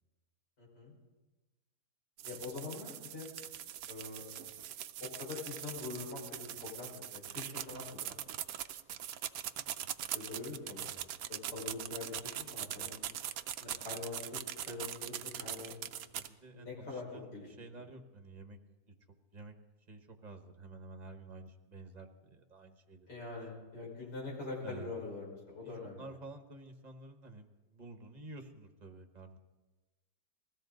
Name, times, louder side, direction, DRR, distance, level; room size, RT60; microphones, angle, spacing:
voice 1, 0.6-0.9 2.2-3.3 3.9-4.2 5.0-8.2 10.1-13.0 13.6-14.4 14.7-15.7 16.5-17.5 23.1-26.0, left 3 dB, 85° left, -3 dB, 5.9 m, -44 dB
sound 1, 2.2-16.3, right 11 dB, 70° right, 1.0 m, -42 dB
voice 2, 16.1-17.3 17.6-18.6 18.9-19.0 19.3-19.5 19.9-23.1 24.6-25.0 25.6-29.4, right 2 dB, 30° right, 5 dB, 1.2 m, -51 dB
21.0 x 15.5 x 3.9 m, 1.2 s
omnidirectional pair, 1.8 m